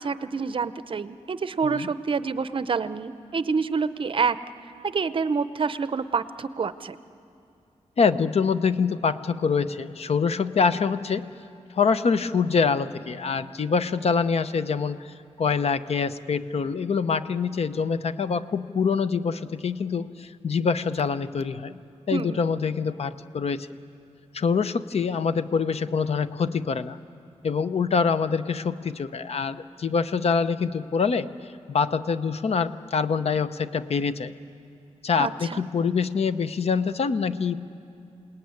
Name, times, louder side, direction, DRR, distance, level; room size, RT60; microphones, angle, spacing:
voice 1, 0.0-4.4 4.8-7.0 22.1-22.4 35.2-35.6, right 5 dB, 50° right, 13 dB, 0.7 m, -27 dB
voice 2, 8.0-11.3 11.7-21.8 22.1-23.7 24.3-27.0 27.4-31.3 31.7-34.3 35.0-37.6, left 5 dB, 60° left, 12 dB, 0.7 m, -25 dB
28.0 x 19.0 x 9.6 m, 2.5 s
wide cardioid pair, 160°, 12 cm